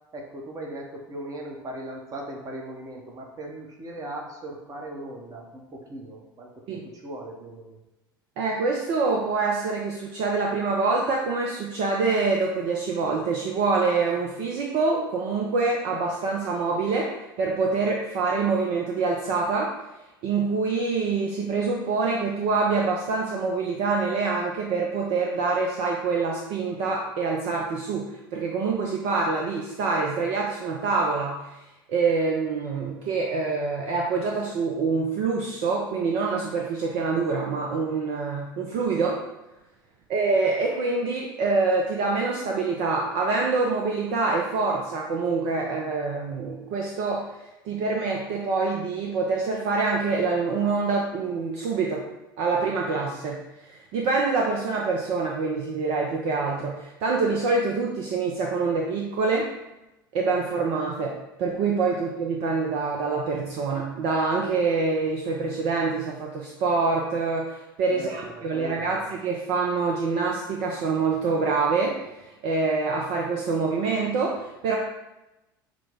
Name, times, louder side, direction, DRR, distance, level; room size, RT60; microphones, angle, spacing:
voice 1, 0.1-7.8 61.9-62.0 67.9-69.0, right 1 dB, 30° right, 1 dB, 0.9 m, -38 dB
voice 2, 8.4-17.1 17.4-19.7 20.2-31.5 31.9-39.2 40.1-47.3 47.6-52.0 52.4-59.5 60.1-74.8, right 4 dB, 50° right, -1 dB, 0.6 m, -26 dB
6.0 x 2.1 x 3.4 m, 0.98 s
figure-of-eight pair, 70°, 12 cm